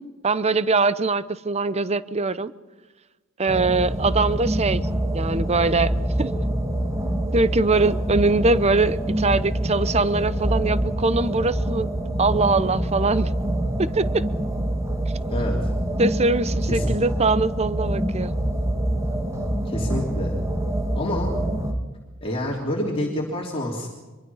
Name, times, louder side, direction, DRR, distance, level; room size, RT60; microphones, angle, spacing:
voice 1, 0.2-2.5 3.4-4.8 5.1-5.9 6.2-6.3 7.3-11.9 12.2-13.3 13.8-14.2 16.0-18.3, right 3 dB, 30° right, 15 dB, 0.7 m, -22 dB
sound 1, 3.5-21.7, right 1 dB, 15° right, 2.2 m, -25 dB
voice 2, 15.3-15.7 16.6-17.0 19.6-20.4 20.9-21.3 22.2-23.9, left 1 dB, 25° left, -2 dB, 3.2 m, -28 dB
25.0 x 23.0 x 5.7 m, 1.2 s
head